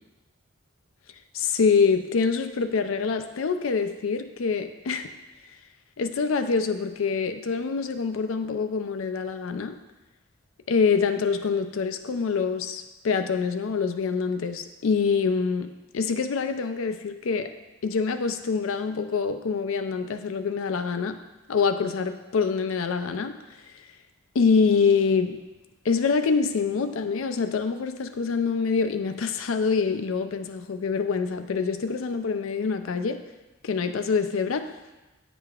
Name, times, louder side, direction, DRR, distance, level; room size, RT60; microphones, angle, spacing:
voice 1, 1.3-5.1 6.0-9.8 10.7-15.7 15.9-17.5 17.8-21.2 21.5-23.4 24.3-25.4 25.8-33.2 33.6-34.7, left 5 dB, 90° left, 9 dB, 0.4 m, -25 dB
8.9 x 5.0 x 2.4 m, 1.1 s
head